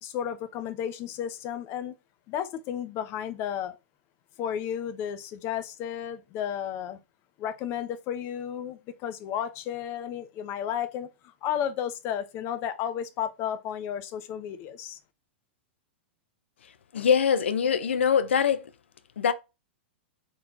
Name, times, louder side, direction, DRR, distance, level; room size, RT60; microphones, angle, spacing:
voice 1, 0.0-1.9 2.3-3.7 4.4-7.0 7.4-11.1 11.4-15.0, left 9 dB, 40° left, 0.7 m, -33 dB
voice 2, 16.9-18.7 19.2-19.3, left 7 dB, 80° left, 0.6 m, -23 dB
4.3 x 3.1 x 3.7 m
hypercardioid pair, 115°, 6 cm